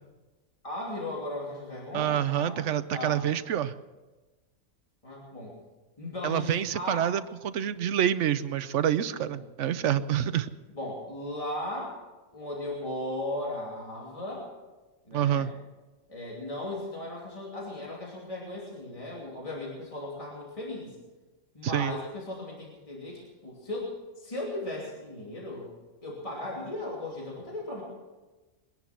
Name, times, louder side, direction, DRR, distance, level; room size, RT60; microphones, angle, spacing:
voice 1, 0.6-3.2 5.0-5.6 6.0-7.1 9.0-9.3 10.7-12.0 12.3-14.5 15.0-15.5 16.1-21.0 21.5-25.7 26.0-27.8, left 1 dB, 25° left, -4 dB, 3.0 m, -37 dB
voice 2, 1.9-3.7 6.2-10.5 15.1-15.5 21.6-21.9, right 10 dB, 70° right, 13 dB, 1.0 m, -27 dB
22.0 x 11.0 x 6.0 m, 1.2 s
omnidirectional pair, 1.3 m